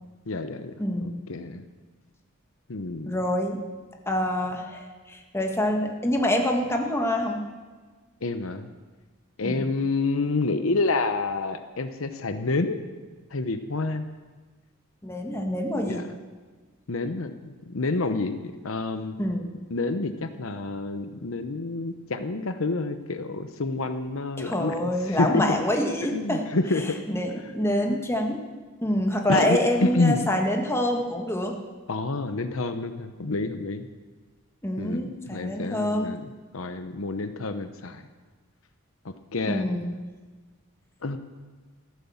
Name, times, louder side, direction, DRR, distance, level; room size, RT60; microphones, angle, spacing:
voice 1, 0.3-0.7 1.0-1.6 2.7-3.2 8.2-8.7 9.4-12.8 13.3-14.1 15.9-16.1 16.9-19.2 19.7-25.6 26.1-27.0 29.3-30.2 31.9-33.9 34.8-38.0 39.0-39.7 41.0-41.2, left 3 dB, 80° left, 9 dB, 0.9 m, -28 dB
voice 2, 0.8-1.2 3.1-3.6 4.1-7.5 9.4-9.6 15.0-16.1 19.2-19.5 24.4-26.5 27.1-28.4 28.8-31.6 34.6-36.1 39.5-40.0, left 1 dB, 15° left, 2 dB, 1.7 m, -26 dB
14.0 x 14.0 x 7.2 m, 1.3 s
head